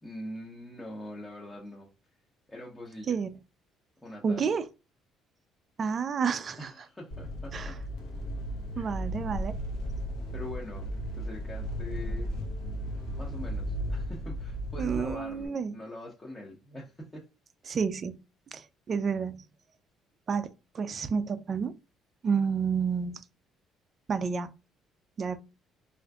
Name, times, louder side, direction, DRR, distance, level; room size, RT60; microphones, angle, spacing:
voice 1, 0.0-1.9 2.5-3.2 4.0-4.6 6.6-7.8 8.7-9.0 10.3-10.9 11.1-12.3 13.1-17.2, left 1 dB, 15° left, 0.7 m, -43 dB
voice 2, 3.1-3.4 4.2-4.7 5.8-6.7 7.5-7.7 8.8-9.6 14.8-15.7 17.7-18.2 18.5-19.4 20.3-21.8 22.2-23.2 24.1-24.5 25.2-25.4, right 6 dB, 35° right, 0.3 m, -30 dB
sound 1, 7.1-15.5, equal, 85° left, 0.8 m, -35 dB
3.7 x 2.5 x 2.3 m
cardioid pair, 130°, 0 cm